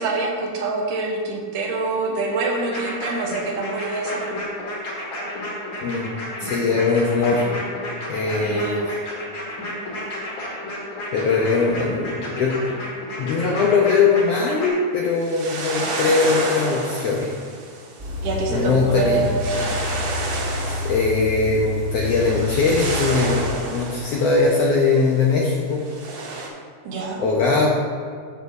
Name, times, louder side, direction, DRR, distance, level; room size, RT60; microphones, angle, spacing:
voice 1, 0.0-4.3 8.4-8.8 18.2-19.7 26.9-27.2, right 3 dB, 80° right, -1 dB, 2.8 m, -25 dB
sound 1, 2.7-14.7, left 1 dB, 60° left, 3.5 m, -32 dB
voice 2, 6.4-7.5 8.1-8.8 11.1-12.8 13.2-17.3 18.5-19.2 20.7-23.4 23.7-25.8 27.2-27.7, left 4 dB, 75° left, -3 dB, 1.5 m, -20 dB
sound 2, 15.1-25.4 25.7-26.5, right 2 dB, 65° right, 2.2 m, -31 dB
sound 3, 18.0-23.5, left 2 dB, 15° right, 0.8 m, -28 dB
11.0 x 6.9 x 2.7 m, 2.1 s
omnidirectional pair, 3.7 m